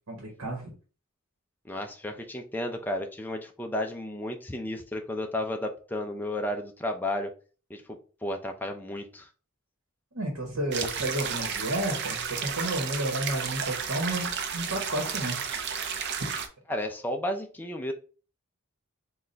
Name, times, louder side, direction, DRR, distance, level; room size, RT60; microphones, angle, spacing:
voice 1, 0.1-0.7 10.1-15.4, right 1 dB, 75° right, 0 dB, 1.1 m, -31 dB
voice 2, 1.6-7.3 7.7-9.3 16.7-17.9, left 1 dB, 10° left, 3 dB, 0.4 m, -33 dB
sound 1, 10.7-16.5, right 7 dB, 50° right, 0.5 m, -32 dB
4.0 x 2.4 x 3.2 m, 0.37 s
head